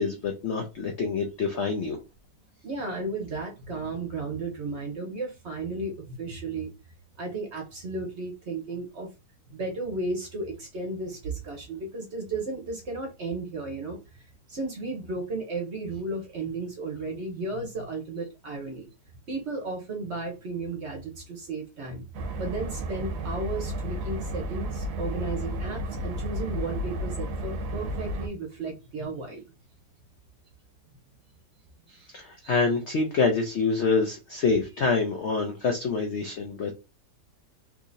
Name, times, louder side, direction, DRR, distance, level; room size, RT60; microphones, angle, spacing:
voice 1, 0.0-2.0 31.9-36.7, left 4 dB, 80° left, 0.6 m, -26 dB
voice 2, 2.6-6.7 7.2-9.1 9.5-14.0 14.5-18.9 19.3-22.1 22.4-29.4, right 3 dB, 50° right, 0.9 m, -34 dB
sound 1, 22.1-28.3, right 1 dB, 70° right, 1.2 m, -32 dB
3.6 x 2.9 x 2.5 m
omnidirectional pair, 1.9 m